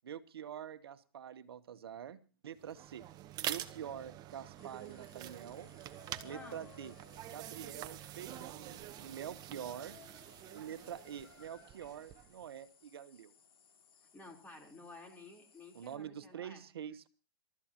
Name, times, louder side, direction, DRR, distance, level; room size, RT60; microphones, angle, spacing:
voice 1, 0.0-3.1 3.5-5.7 6.2-6.9 7.3-10.0 10.5-13.3 15.7-17.1, right 9 dB, 85° right, 12 dB, 1.1 m, -46 dB
sound 1, 2.6-12.4, right 12 dB, 30° right, 0.9 m, -46 dB
sound 2, 4.6-16.0, left 8 dB, 80° left, 2.6 m, -62 dB
voice 2, 6.3-6.6 14.1-16.6, left 2 dB, 15° left, 2 dB, 3.8 m, -53 dB
27.0 x 13.0 x 2.9 m, 0.34 s
hypercardioid pair, 130°, 12 cm